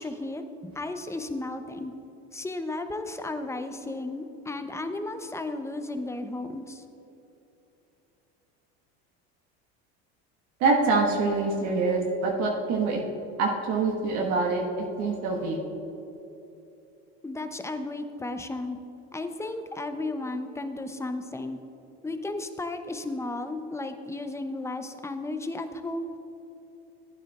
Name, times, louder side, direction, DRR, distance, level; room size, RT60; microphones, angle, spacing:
voice 1, 0.0-1.9 2.3-6.8 17.2-18.8 19.1-21.6 22.0-26.1, left 2 dB, 10° left, 8 dB, 0.7 m, -34 dB
voice 2, 10.6-13.0 13.4-14.6 15.0-15.6, right 3 dB, 60° right, -1 dB, 1.5 m, -25 dB
14.5 x 9.3 x 2.4 m, 2.9 s
hypercardioid pair, 85°, 32 cm